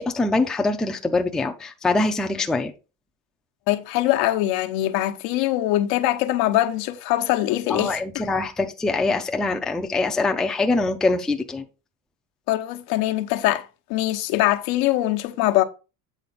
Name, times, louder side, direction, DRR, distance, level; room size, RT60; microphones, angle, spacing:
voice 1, 0.0-2.7 7.7-11.6, left 3 dB, ahead, 0.3 m, -23 dB
voice 2, 3.7-8.0 12.5-15.6, left 15 dB, 85° left, 0.9 m, -22 dB
8.3 x 4.3 x 3.9 m
cardioid pair, 165°, 36 cm